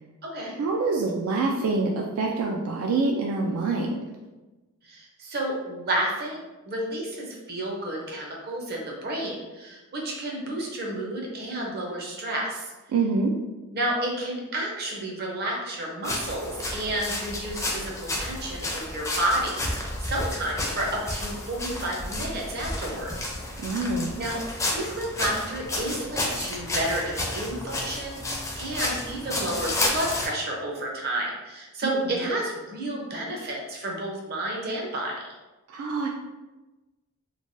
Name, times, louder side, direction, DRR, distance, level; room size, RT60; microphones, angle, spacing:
voice 1, 0.5-4.0 12.9-13.4 23.6-24.1 31.8-32.4 35.7-36.1, right 3 dB, 75° right, 1 dB, 0.3 m, -26 dB
voice 2, 4.8-12.6 13.7-23.3 24.2-35.1, right 1 dB, 45° right, -1 dB, 0.6 m, -31 dB
sound 1, 16.0-30.3, left 1 dB, 15° left, 0.4 m, -31 dB
3.2 x 2.2 x 2.6 m, 1.1 s
head